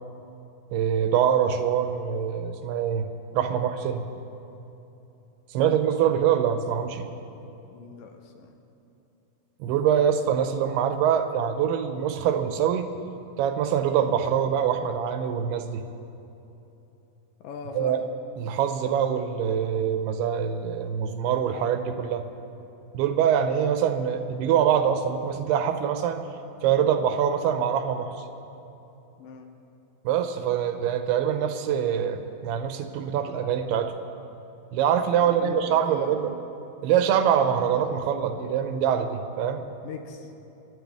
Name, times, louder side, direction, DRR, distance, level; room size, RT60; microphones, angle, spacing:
voice 1, 0.7-3.1 3.3-4.0 5.5-7.1 9.6-12.9 13.4-15.8 17.8-18.0 18.4-22.2 22.9-26.2 26.6-28.1 30.0-33.9 34.7-36.3 36.8-39.7, right 8 dB, 85° right, 8 dB, 2.8 m, -24 dB
voice 2, 7.7-8.6 17.4-18.1 29.2-29.5 35.2-36.4 39.8-40.3, left 6 dB, 75° left, 4 dB, 2.3 m, -40 dB
27.5 x 9.9 x 3.5 m, 3.0 s
omnidirectional pair, 4.5 m